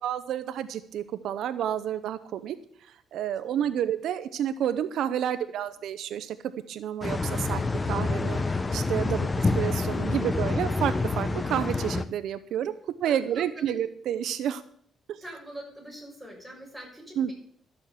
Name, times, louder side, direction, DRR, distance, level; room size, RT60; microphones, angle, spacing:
voice 1, 0.0-2.6 3.1-6.4 6.7-8.4 8.7-9.3 9.6-12.7 13.0-14.6 15.1-15.2 17.2-17.3, right 10 dB, 75° right, 12 dB, 0.6 m, -30 dB
sound 1, 7.0-12.0, left 3 dB, 25° left, 0.8 m, -27 dB
voice 2, 13.0-13.8 15.2-17.3, right 1 dB, ahead, -2 dB, 6.6 m, -44 dB
13.0 x 7.0 x 7.2 m, 0.64 s
cardioid pair, 90°, 0 cm